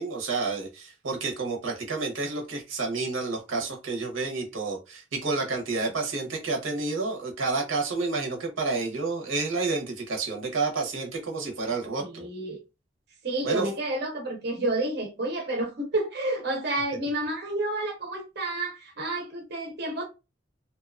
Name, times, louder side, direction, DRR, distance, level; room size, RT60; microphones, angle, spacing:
voice 1, 0.0-12.3 13.4-13.7, right 3 dB, 85° right, 0.8 m, -30 dB
voice 2, 12.0-12.6 13.2-20.0, right 2 dB, 55° right, 0.6 m, -30 dB
2.7 x 2.2 x 2.4 m
head